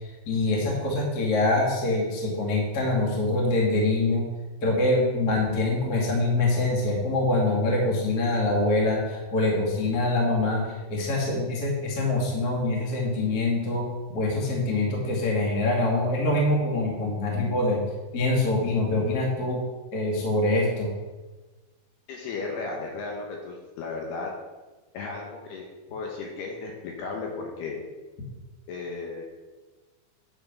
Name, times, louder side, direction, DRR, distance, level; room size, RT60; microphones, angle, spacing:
voice 1, 0.2-4.2 4.6-10.6 10.9-13.8 14.1-17.8 18.1-19.6 19.9-20.9, left 2 dB, 55° left, -2 dB, 1.0 m, -24 dB
voice 2, 22.1-24.3 24.9-27.8 28.7-29.2, left 4 dB, 70° left, 0 dB, 2.7 m, -35 dB
9.7 x 6.0 x 6.0 m, 1.2 s
omnidirectional pair, 5.7 m